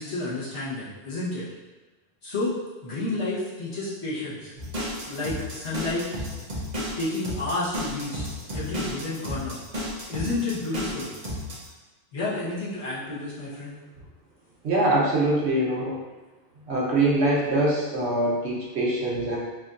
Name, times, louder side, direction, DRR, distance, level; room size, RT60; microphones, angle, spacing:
voice 1, 0.0-1.4 2.2-2.5 2.8-4.5 5.0-6.1 6.7-8.2 8.5-9.6 10.1-11.1 12.1-13.7, left 2 dB, 75° left, -10 dB, 1.5 m, -30 dB
sound 1, 4.6-11.7, equal, 45° right, 0.9 m, -32 dB
voice 2, 14.6-15.9 16.7-19.4, right 1 dB, 75° right, -4 dB, 1.2 m, -23 dB
4.8 x 2.6 x 2.5 m, 1.2 s
omnidirectional pair, 1.1 m